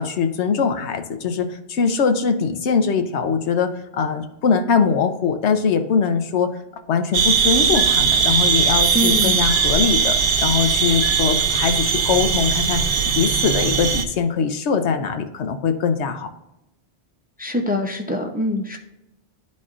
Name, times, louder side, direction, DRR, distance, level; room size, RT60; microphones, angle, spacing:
voice 1, 0.0-6.6 6.9-12.8 13.1-16.3, left 6 dB, 85° left, 8 dB, 1.0 m, -22 dB
sound 1, 7.1-14.0, right 6 dB, 55° right, 0.8 m, -19 dB
voice 2, 8.9-9.4 17.4-18.8, left 1 dB, 10° right, 3 dB, 0.4 m, -24 dB
12.0 x 4.2 x 2.5 m, 0.89 s
omnidirectional pair, 1.1 m